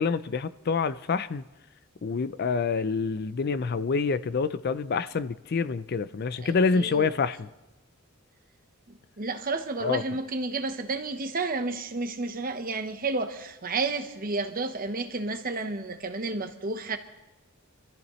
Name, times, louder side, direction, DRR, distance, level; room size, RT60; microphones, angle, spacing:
voice 1, 0.0-1.4 2.0-7.5 9.8-10.0, left 5 dB, 45° left, 0.4 m, -27 dB
voice 2, 6.4-7.1 8.9-17.0, right 3 dB, 40° right, 1.0 m, -31 dB
25.5 x 13.5 x 3.1 m
head